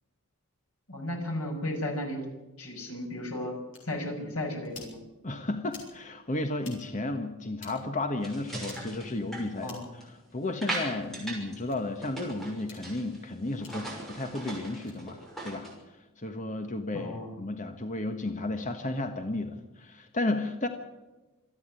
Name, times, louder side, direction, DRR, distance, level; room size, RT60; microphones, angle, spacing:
voice 1, 0.9-2.2 2.6-3.5 3.8-5.0 9.6-9.9 16.9-17.3, left 1 dB, 85° left, 2 dB, 6.1 m, -34 dB
sound 1, 3.7-3.8 4.6-4.9 5.7-5.9 6.6-6.8 7.6-7.7 8.6-8.8 9.6-9.9 10.6-10.8 11.7-11.8 12.6-12.8 13.6-13.7 14.7-15.0, left 4 dB, 55° left, 7.5 m, -48 dB
voice 2, 5.2-20.7, left 2 dB, 35° left, 6 dB, 1.3 m, -33 dB
sound 2, 8.2-10.1 10.6-11.6 11.8-13.2 13.5-15.7, right 1 dB, ahead, 6.3 m, -38 dB
27.0 x 9.8 x 9.7 m, 1.1 s
head